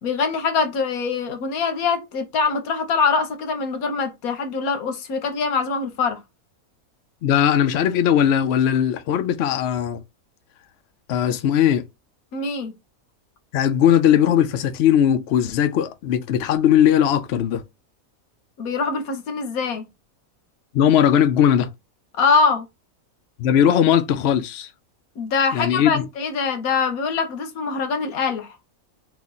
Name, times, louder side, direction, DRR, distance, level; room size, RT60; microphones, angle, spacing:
voice 1, 0.0-6.2 12.3-12.7 18.6-19.8 22.2-22.6 25.2-28.5, left 5 dB, 85° left, 1.3 m, -23 dB
voice 2, 7.2-10.0 11.1-11.8 13.5-17.6 20.7-21.7 23.4-24.7 25.5-26.1, left 9 dB, 65° left, 0.7 m, -18 dB
3.0 x 2.4 x 3.8 m
omnidirectional pair, 1.5 m